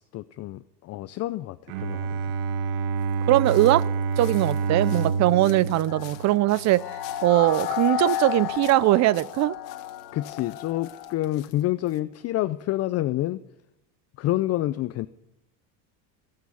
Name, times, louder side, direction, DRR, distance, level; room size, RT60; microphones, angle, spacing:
voice 1, 0.1-2.2 10.1-13.4 14.2-15.1, left 15 dB, 40° left, 14 dB, 0.5 m, -28 dB
Bowed string instrument, 1.7-6.9, right 5 dB, 75° right, 1.2 m, -28 dB
sound 1, 3.0-12.0, left 16 dB, 80° left, 1.4 m, -50 dB
voice 2, 3.3-3.8 4.2-6.8 7.2-9.6, right 16 dB, 40° right, 22 dB, 0.5 m, -21 dB
sound 2, 5.9-11.1, left 12 dB, 60° left, 1.7 m, -32 dB
16.5 x 8.7 x 9.5 m, 0.86 s
supercardioid pair, 125°, 41 cm